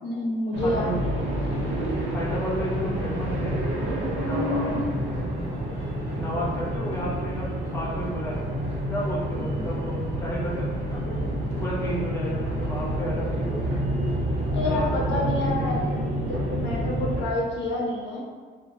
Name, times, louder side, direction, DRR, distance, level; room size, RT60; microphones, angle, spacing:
voice 1, 0.0-1.2 9.3-9.7 14.5-18.2, left 1 dB, 70° left, -2 dB, 0.5 m, -29 dB
sound 1, 0.5-17.2, equal, 70° right, 0.6 m, -28 dB
voice 2, 0.6-1.0 2.1-3.6 4.2-4.9 6.1-8.4 8.9-11.2 11.6-13.9 14.7-16.0, equal, 15° left, -6 dB, 0.9 m, -33 dB
sound 2, 1.2-15.0, equal, 30° right, 1.1 m, -46 dB
2.8 x 2.0 x 2.6 m, 1.5 s
cardioid pair, 90°, 20 cm